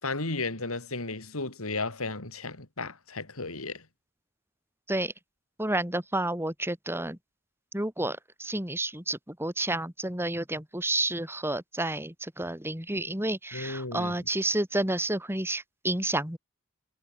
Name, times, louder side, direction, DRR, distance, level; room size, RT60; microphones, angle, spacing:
voice 1, 0.0-3.8 13.5-14.2, left 3 dB, 85° left, 4.1 m, -34 dB
voice 2, 5.6-7.2 7.7-16.4, right 1 dB, 10° right, 4.1 m, -30 dB
head